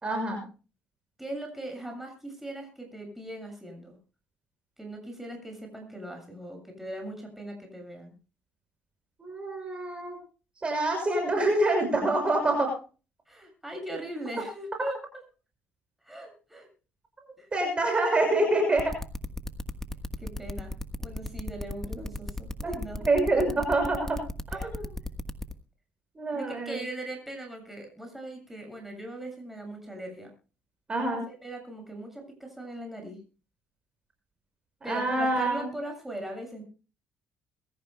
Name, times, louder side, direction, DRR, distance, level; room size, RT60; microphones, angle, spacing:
voice 1, 0.0-0.4 9.2-10.2 10.6-12.7 17.5-19.0 22.6-22.7 23.1-24.2 24.6-24.9 26.2-26.8 30.9-31.2 34.9-35.7, right 2 dB, 25° right, 3 dB, 6.1 m, -26 dB
voice 2, 1.2-4.0 4.8-8.1 13.3-15.0 16.0-16.7 17.4-17.5 20.2-23.0 24.5-24.7 26.3-30.3 31.1-33.2 34.8-36.6, right 1 dB, 5° right, 3 dB, 7.4 m, -40 dB
sound 1, 18.8-25.5, left 2 dB, 10° left, 1.3 m, -35 dB
23.0 x 14.5 x 2.2 m, 0.34 s
cardioid pair, 95°, 4 cm